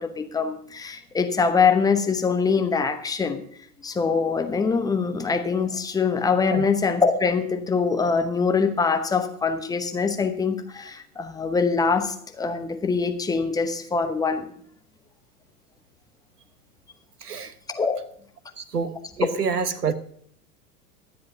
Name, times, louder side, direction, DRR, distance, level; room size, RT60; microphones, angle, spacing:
voice 1, 0.0-3.4 3.8-14.5 17.7-18.0, left 5 dB, 10° left, 7 dB, 0.9 m, -23 dB
voice 2, 17.2-17.5 18.6-19.9, right 5 dB, 80° right, 14 dB, 1.2 m, -27 dB
23.0 x 7.9 x 2.8 m, 0.62 s
figure-of-eight pair, 95°, 46 cm